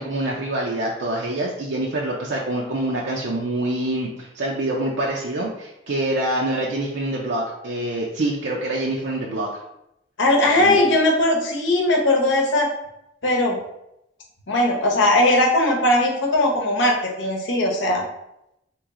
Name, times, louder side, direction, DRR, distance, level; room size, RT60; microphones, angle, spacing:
voice 1, 0.0-9.5 10.5-10.8, right 1 dB, 65° right, -2 dB, 0.5 m, -26 dB
voice 2, 10.2-12.7 13.2-13.6 14.5-18.0, left 1 dB, 75° left, 0 dB, 0.9 m, -19 dB
3.1 x 3.1 x 3.6 m, 0.84 s
head